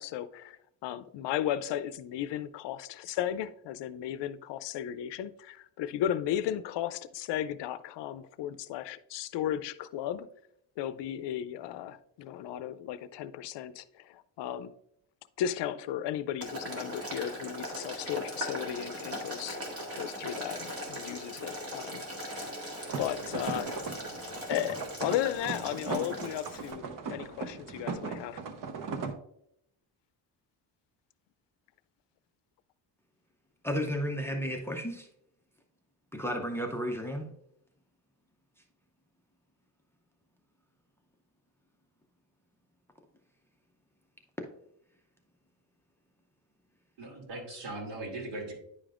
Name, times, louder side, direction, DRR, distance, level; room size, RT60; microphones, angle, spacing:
voice 1, 0.0-10.3 10.8-14.7 15.4-19.6 20.0-22.4 23.0-23.8 24.5-28.4, left 11 dB, 75° left, 0.5 m, -35 dB
Boiling, 16.4-26.7, equal, 30° right, 1.8 m, -39 dB
sound 1, 22.9-29.1, right 5 dB, 45° right, 0.8 m, -38 dB
voice 2, 33.6-35.1 36.1-37.3, equal, 5° left, 0.5 m, -33 dB
voice 3, 47.0-48.5, right 2 dB, 80° right, 2.6 m, -39 dB
9.9 x 5.1 x 2.5 m
cardioid pair, 160°, 43 cm